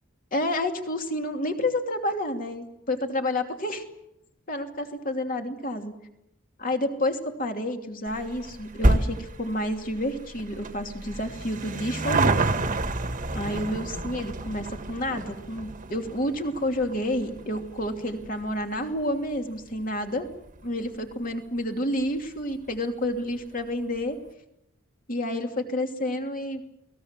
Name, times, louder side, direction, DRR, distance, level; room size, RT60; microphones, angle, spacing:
voice 1, 0.3-3.8 4.5-5.9 6.6-12.5 13.3-20.3 20.6-24.2 25.1-26.6, left 1 dB, 40° left, 4 dB, 2.9 m, -29 dB
sound 1, 8.1-20.8 21.1-21.2 22.1-22.2 22.4-22.5 22.8-22.9, right 2 dB, 40° right, 1.6 m, -30 dB
29.5 x 20.0 x 7.5 m, 0.85 s
head